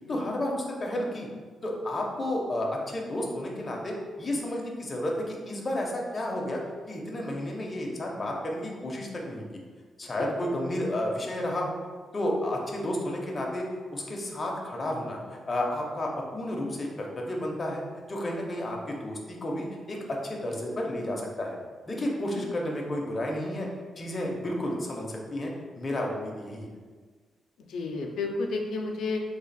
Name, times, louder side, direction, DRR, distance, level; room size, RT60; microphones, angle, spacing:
voice 1, 0.1-1.3 1.6-6.6 6.9-9.5 10.0-11.8 12.1-13.7 13.9-17.8 18.1-21.6 21.9-23.7 24.0-26.7, left 1 dB, 25° left, -1 dB, 0.5 m, -31 dB
voice 2, 27.6-29.2, left 3 dB, 90° left, 2 dB, 0.4 m, -32 dB
3.2 x 2.3 x 3.9 m, 1.5 s
wide cardioid pair, 165°, 0 cm